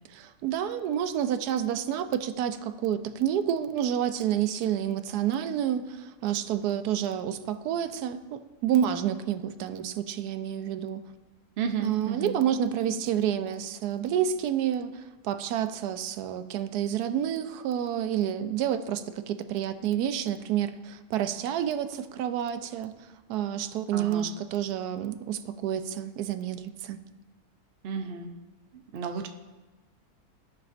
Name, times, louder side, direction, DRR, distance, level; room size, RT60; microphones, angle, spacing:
voice 1, 0.1-11.0 11.8-22.9 23.3-27.0, right 10 dB, 90° right, 10 dB, 1.1 m, -29 dB
voice 2, 11.6-12.3 23.9-24.3 27.8-28.3 28.7-29.3, right 6 dB, 55° right, 6 dB, 0.7 m, -33 dB
16.0 x 5.7 x 2.5 m, 1.2 s
omnidirectional pair, 1.6 m